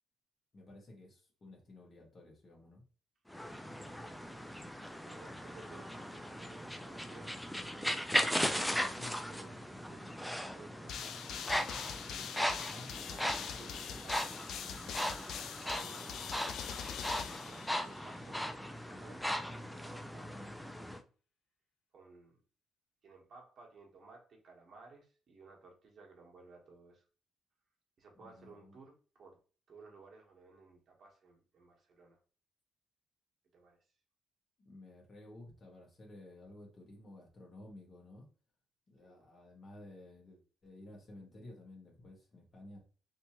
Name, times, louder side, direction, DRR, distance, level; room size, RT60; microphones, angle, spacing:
voice 1, 0.5-2.8 8.6-9.2 12.7-13.0 20.2-20.6 28.1-28.8 34.6-38.3 38.9-42.8, left 1 dB, 40° left, 0 dB, 1.5 m, -53 dB
sound 1, 3.3-21.0, equal, 5° left, 0.4 m, -38 dB
voice 2, 3.6-7.4 7.7-8.9 9.3-11.4 12.5-14.4 14.9-15.1 15.7-16.6 17.5-18.4 18.9-20.4 20.9-21.1 21.9-22.4 23.0-27.0 28.0-29.4 29.7-32.2 33.5-33.8 39.0-39.3, right 4 dB, 50° right, 0 dB, 1.2 m, -57 dB
sound 2, 10.9-18.2, left 8 dB, 75° left, 0.3 m, -43 dB
3.3 x 2.9 x 2.9 m, 0.39 s
cardioid pair, 90°, 0 cm